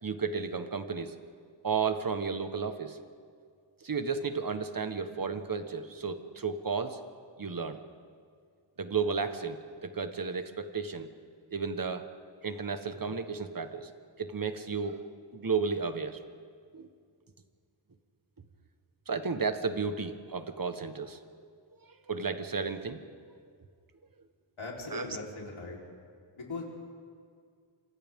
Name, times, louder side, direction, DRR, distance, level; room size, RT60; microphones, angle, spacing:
voice 1, 0.0-1.1 1.6-3.0 3.8-7.0 7.4-7.8 8.8-9.6 9.8-11.1 11.5-12.1 12.4-13.9 14.2-15.0 15.3-16.2 16.7-16.9 19.1-21.2 22.1-23.0 23.4-23.5 24.9-25.2, right 5 dB, 45° right, 8 dB, 1.3 m, -33 dB
voice 2, 24.6-25.8 26.4-26.6, left 3 dB, 75° left, -3 dB, 4.1 m, -39 dB
28.0 x 26.5 x 3.7 m, 2.1 s
wide cardioid pair, 95°, 48 cm